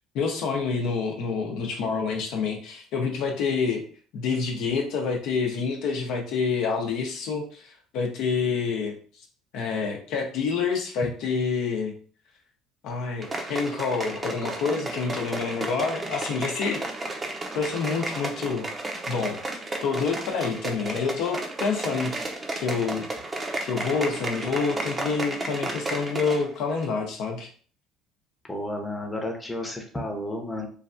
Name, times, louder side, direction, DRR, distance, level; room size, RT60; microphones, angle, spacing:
voice 1, 0.1-3.8 4.1-8.9 9.5-11.9 12.8-16.8 17.5-18.7 19.1-19.4 19.8-23.1 23.6-27.5, left 5 dB, 70° left, 2 dB, 0.7 m, -27 dB
sound 1, 13.2-26.5 26.8-26.9, right 2 dB, 25° right, 0.6 m, -33 dB
voice 2, 28.4-30.7, left 1 dB, 10° left, 1 dB, 0.7 m, -32 dB
3.2 x 2.3 x 2.5 m, 0.43 s
supercardioid pair, 95°, 0 cm